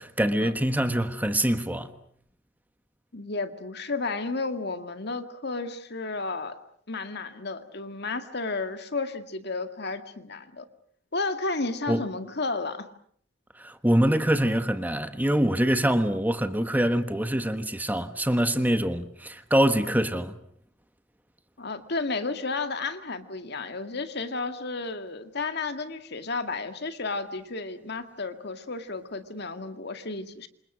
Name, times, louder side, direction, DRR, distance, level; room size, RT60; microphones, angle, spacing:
voice 1, 0.0-1.9 11.9-12.1 13.6-20.4, right 1 dB, 10° right, 1.4 m, -24 dB
voice 2, 3.1-6.6 6.9-10.7 11.1-12.9 21.6-30.5, left 3 dB, 60° left, 2.1 m, -32 dB
28.5 x 27.0 x 6.3 m
head